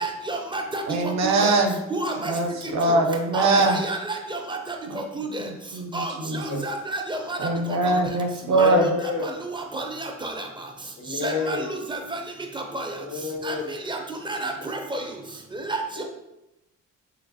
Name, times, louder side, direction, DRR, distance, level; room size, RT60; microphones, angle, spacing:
voice 1, 0.0-0.8 1.9-2.3 3.3-4.0 5.2-5.3 5.9-6.1 6.7-7.4 8.6-8.7 9.7-9.8 10.2-10.3 11.2-11.6 12.7-12.8 13.5-13.6 13.9-14.0 14.3-14.5 14.9-15.0 15.7-15.8, right 2 dB, 15° right, 3 dB, 0.4 m, -29 dB
voice 2, 0.9-1.8 2.2-3.8 4.9-5.0 5.4-6.6 7.4-8.9, right 3 dB, 65° right, 3 dB, 0.6 m, -22 dB
voice 3, 2.6-3.0 6.2-6.7 8.4-9.4 11.0-11.7 13.0-13.7 14.4-14.5 15.9-16.0, left 4 dB, 75° left, 2 dB, 0.8 m, -29 dB
3.2 x 3.2 x 2.5 m, 0.91 s
cardioid pair, 90°, 30 cm